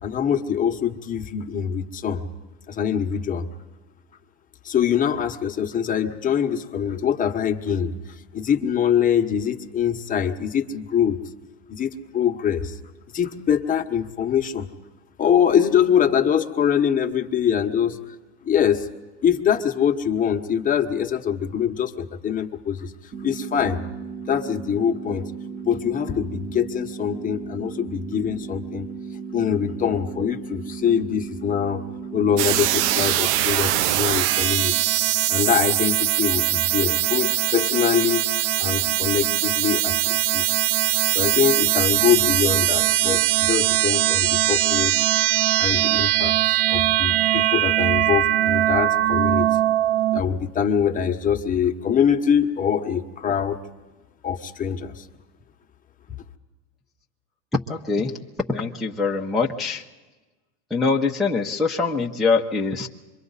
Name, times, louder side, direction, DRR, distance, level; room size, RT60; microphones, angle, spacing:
voice 1, 0.0-2.2 2.7-3.5 4.6-11.2 11.7-12.8 13.1-14.7 15.2-18.1 18.4-18.9 19.2-22.9 23.2-23.8 24.3-25.3 25.6-28.9 29.3-31.8 32.1-34.7 35.3-38.3 38.6-40.4 41.1-45.1 45.6-49.5 50.1-53.6 54.2-55.1, left 8 dB, 25° left, 3 dB, 1.3 m, -23 dB
sound 1, 23.1-33.1, right 6 dB, 35° right, 2.7 m, -35 dB
sound 2, 32.4-50.2, right 14 dB, 75° right, 0.5 m, -21 dB
voice 2, 57.7-58.1 58.5-59.8 60.7-62.9, left 4 dB, ahead, -4 dB, 1.0 m, -23 dB
27.0 x 23.5 x 4.1 m, 1.2 s
supercardioid pair, 130°, 35 cm